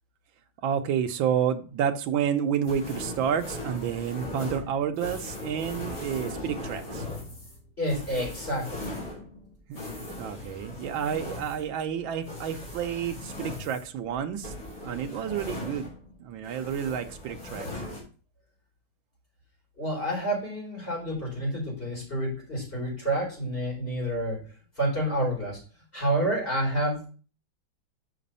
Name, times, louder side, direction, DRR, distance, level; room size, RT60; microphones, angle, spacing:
voice 1, 0.6-7.0 9.7-9.8 10.2-14.5 14.8-15.9 16.2-17.7, right 8 dB, 80° right, 1.6 m, -30 dB
sound 1, 2.7-16.2 16.4-18.0, left 2 dB, 45° left, 3.9 m, -39 dB
voice 2, 7.8-8.9 19.8-24.4 24.8-25.6 25.9-27.1, right 1 dB, 25° left, 4.4 m, -29 dB
6.8 x 5.1 x 5.5 m
omnidirectional pair, 2.2 m